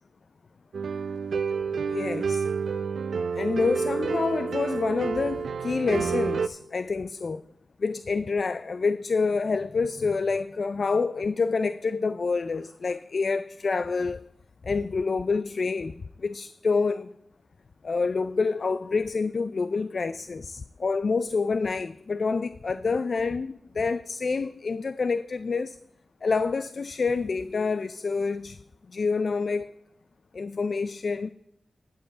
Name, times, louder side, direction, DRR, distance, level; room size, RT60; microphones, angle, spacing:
sound 1, 0.7-6.5, right 5 dB, 80° right, 0.5 m, -29 dB
voice 1, 1.9-2.5 3.3-7.4 7.8-14.3 14.6-17.1 17.8-25.8 26.2-28.6 28.9-29.7 30.3-31.3, left 4 dB, 60° left, 0.3 m, -27 dB
11.0 x 7.2 x 4.9 m
cardioid pair, 55°, 0 cm